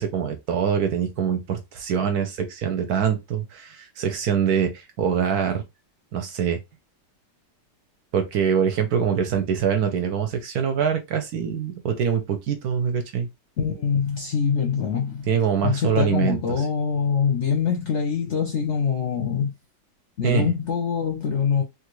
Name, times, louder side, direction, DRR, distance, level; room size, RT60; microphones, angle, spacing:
voice 1, 0.0-5.6 6.1-6.6 8.1-13.3 15.3-16.7 20.2-20.5, right 7 dB, 70° right, 1.0 m, -24 dB
voice 2, 13.6-15.3 15.6-19.5 20.2-21.6, left 6 dB, 55° left, 0.8 m, -24 dB
3.1 x 2.4 x 3.1 m
omnidirectional pair, 1.9 m